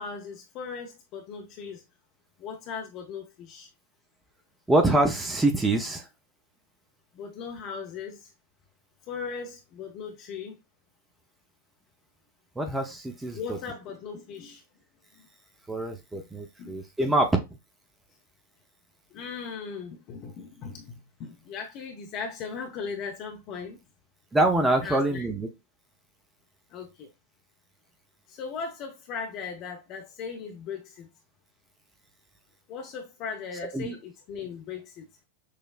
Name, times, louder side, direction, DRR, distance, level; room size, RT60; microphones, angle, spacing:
voice 1, 0.0-1.8 2.4-3.7 7.1-8.3 9.1-10.6 13.3-14.6 16.1-16.2 16.6-16.8 19.1-23.8 24.8-25.3 26.7-27.1 28.3-31.1 32.7-35.1, left 5 dB, 40° left, 0.7 m, -38 dB
voice 2, 4.7-6.1 12.6-13.6 15.7-17.4 24.3-25.5 33.7-34.0, right 2 dB, 10° right, 0.6 m, -25 dB
6.4 x 2.2 x 2.4 m
figure-of-eight pair, 90°, 0 cm